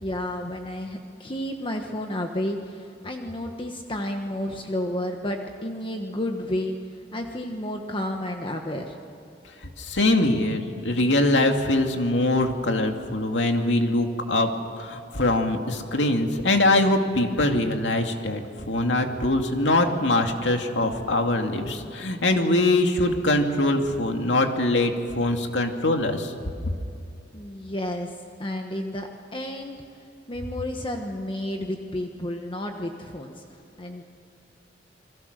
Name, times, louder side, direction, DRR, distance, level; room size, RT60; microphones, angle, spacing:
voice 1, 0.0-6.8 7.1-8.9 27.3-29.8 30.3-33.4 33.8-34.0, left 1 dB, 30° left, 3 dB, 1.3 m, -31 dB
voice 2, 9.8-14.5 14.8-18.4 18.7-26.3, left 2 dB, 90° left, 4 dB, 2.3 m, -23 dB
29.5 x 22.0 x 6.7 m, 2.6 s
head